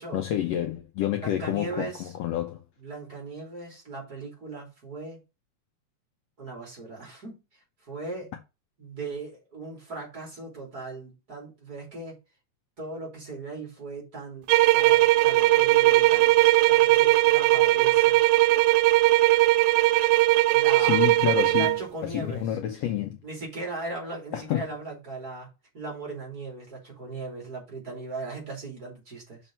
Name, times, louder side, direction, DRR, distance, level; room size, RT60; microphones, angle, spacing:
voice 1, 0.1-2.6 20.8-23.2 24.3-24.7, left 11 dB, 75° left, 1.6 m, -29 dB
voice 2, 1.1-2.1 2.8-5.2 6.4-7.4 7.9-8.3 8.8-12.2 12.8-14.5 14.7-18.2 20.5-21.1 21.5-22.5 23.2-25.5 25.7-29.4, right 3 dB, 30° right, 3.5 m, -38 dB
sound 1, 14.5-21.8, right 17 dB, 85° right, 2.0 m, -19 dB
6.4 x 4.4 x 5.3 m
omnidirectional pair, 3.4 m